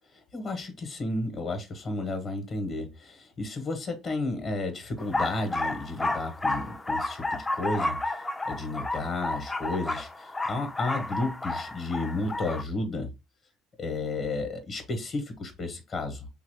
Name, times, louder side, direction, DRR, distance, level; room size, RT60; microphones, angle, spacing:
voice 1, 0.3-8.2 8.4-13.1 13.8-16.3, left 2 dB, 45° left, 0.9 m, -32 dB
sound 1, 5.0-12.6, left 2 dB, 20° left, 0.4 m, -31 dB
2.9 x 2.3 x 3.3 m
supercardioid pair, 80°, 0 cm